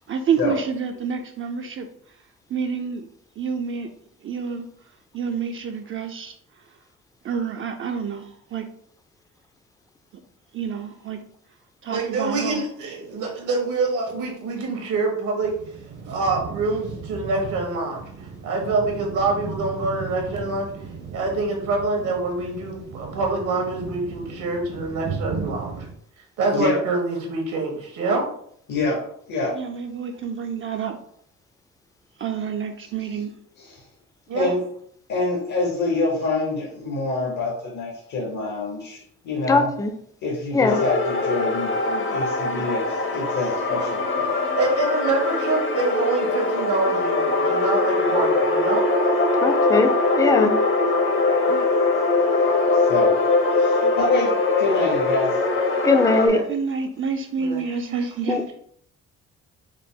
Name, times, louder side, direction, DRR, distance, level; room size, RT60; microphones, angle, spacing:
voice 1, 0.1-1.9 2.5-3.1 3.4-3.9 4.2-4.7 5.1-6.3 7.2-8.7 10.5-11.2 11.8-12.7 29.5-31.0 32.2-33.4 41.9-42.2 51.5-51.7 53.8-53.9 55.8-56.0 56.5-58.4, right 6 dB, 45° right, 4 dB, 0.4 m, -28 dB
voice 2, 11.9-15.5 16.1-18.0 18.4-20.7 21.1-25.8 26.4-28.3 34.3-34.5 42.5-42.6 44.6-48.8 56.2-56.4 57.4-58.1, right 3 dB, 80° right, 1 dB, 1.3 m, -26 dB
sound 1, 15.4-25.9, right 5 dB, 60° right, 0.9 m, -36 dB
voice 3, 28.7-29.6 33.6-33.8 34.3-34.6 35.1-39.7 40.2-41.8 42.1-44.3 52.7-53.2 53.5-55.4, left 2 dB, 70° left, -2 dB, 1.2 m, -26 dB
voice 4, 39.5-39.9 40.5-40.8 49.4-49.9 50.2-50.5 55.8-56.4 58.3-58.5, left 3 dB, 10° left, 7 dB, 0.4 m, -19 dB
sound 2, 40.7-56.3, left 3 dB, 40° left, 0.7 m, -22 dB
4.7 x 2.0 x 3.7 m, 0.65 s
cardioid pair, 90°, 30 cm